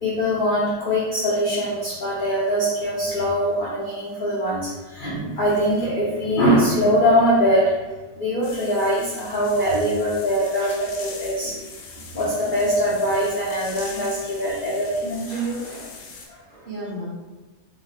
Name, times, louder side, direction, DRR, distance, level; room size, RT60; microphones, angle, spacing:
voice 1, 0.0-7.8 8.1-11.6 12.1-15.6 16.3-16.4, equal, 55° left, -8 dB, 0.6 m, -22 dB
sound 1, 8.4-16.3, left 4 dB, 75° left, 1.0 m, -41 dB
voice 2, 15.3-16.0 16.5-17.1, equal, 40° right, -8 dB, 0.9 m, -37 dB
2.9 x 2.0 x 4.0 m, 1.2 s
omnidirectional pair, 1.6 m